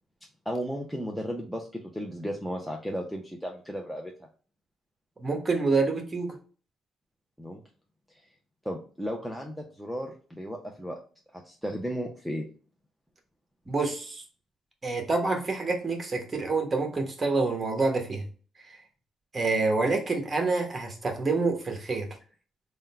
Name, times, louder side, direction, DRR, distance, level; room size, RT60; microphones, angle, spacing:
voice 1, 0.5-4.1 7.4-7.6 8.6-11.0 11.3-12.5, equal, ahead, 1 dB, 0.6 m, -34 dB
voice 2, 5.2-6.3 13.7-14.2 14.8-18.3 19.3-22.1, right 3 dB, 30° right, 4 dB, 1.1 m, -27 dB
3.6 x 2.2 x 4.1 m, 0.40 s
cardioid pair, 90°, 0 cm